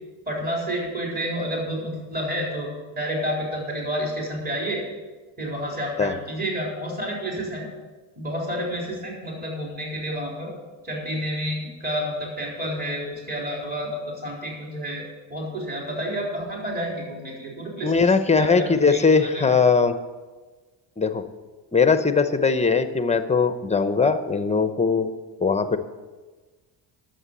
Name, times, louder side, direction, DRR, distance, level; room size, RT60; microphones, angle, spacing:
voice 1, 0.3-2.7 3.0-4.8 5.4-7.6 8.2-10.5 10.8-18.0 18.3-19.4, equal, 20° right, -3 dB, 4.0 m, -30 dB
voice 2, 17.8-20.0 21.0-21.2 21.7-25.1 25.4-25.8, left 5 dB, 15° left, 10 dB, 0.7 m, -20 dB
11.0 x 7.7 x 7.3 m, 1.3 s
cardioid pair, 105°, 44 cm